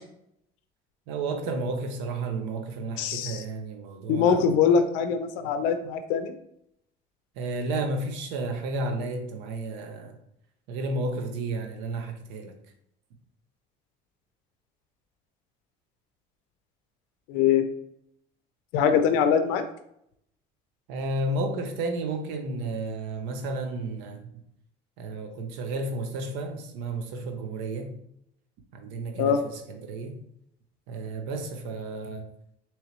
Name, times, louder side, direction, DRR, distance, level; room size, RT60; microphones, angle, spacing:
voice 1, 1.1-4.5 7.4-10.2 10.7-12.5 20.9-24.3 25.0-27.9 28.7-30.2 30.9-32.3, right 2 dB, 85° right, 5 dB, 0.7 m, -32 dB
voice 2, 3.0-3.4 4.1-6.4 17.3-17.6 18.7-19.6 29.1-29.4, left 7 dB, 85° left, 8 dB, 0.4 m, -23 dB
3.6 x 3.1 x 3.1 m, 0.75 s
supercardioid pair, 105°, 18 cm